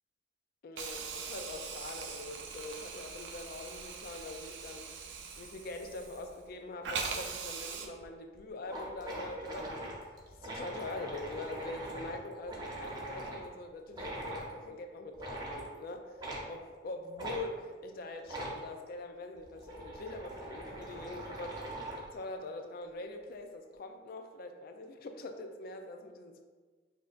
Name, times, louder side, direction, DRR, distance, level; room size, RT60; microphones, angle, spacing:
voice 1, 0.6-4.9 5.4-10.0 10.3-26.4, left 2 dB, 55° left, 6 dB, 0.4 m, -44 dB
Hiss, 0.8-6.5 6.8-7.9, right 5 dB, 80° right, 0.5 m, -41 dB
sound 1, 8.0-8.1 8.3-8.4 8.6-13.5 13.9-14.5 15.1-15.7 16.2-16.5 17.2-17.4 18.2-18.6 19.3-22.1, right 1 dB, 25° right, 0.7 m, -42 dB
6.3 x 2.7 x 2.4 m, 1.4 s
head